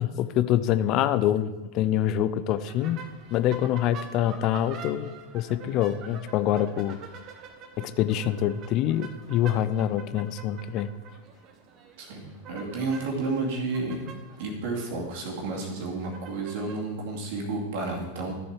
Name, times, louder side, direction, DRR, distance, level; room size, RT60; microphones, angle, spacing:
voice 1, 0.0-3.0 3.3-7.0 7.8-10.9, left 11 dB, 40° left, 13 dB, 0.6 m, -25 dB
sound 1, 2.6-16.9, right 5 dB, 35° right, 1.2 m, -46 dB
voice 2, 12.0-18.4, right 3 dB, 50° right, 0 dB, 2.5 m, -31 dB
13.5 x 7.2 x 4.7 m, 1.1 s
figure-of-eight pair, 90°, 0 cm